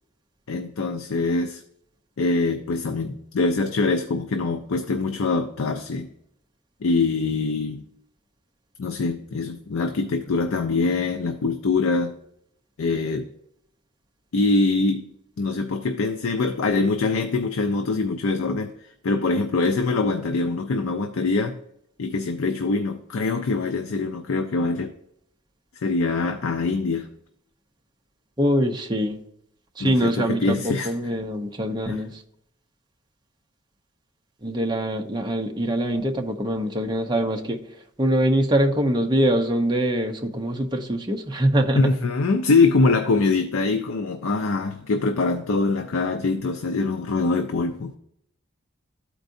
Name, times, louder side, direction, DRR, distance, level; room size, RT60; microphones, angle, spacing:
voice 1, 0.5-1.6 2.2-6.1 6.8-7.9 8.8-12.1 12.8-13.3 14.3-15.1 15.4-18.7 19.0-21.6 22.0-24.9 25.8-27.1 29.8-30.9 31.9-32.0 41.7-47.9, left 3 dB, 85° left, 6 dB, 0.5 m, -23 dB
voice 2, 28.4-29.2 29.8-32.2 34.4-37.6 38.0-41.8, right 1 dB, 20° right, 3 dB, 0.6 m, -23 dB
13.0 x 4.6 x 2.6 m, 0.75 s
head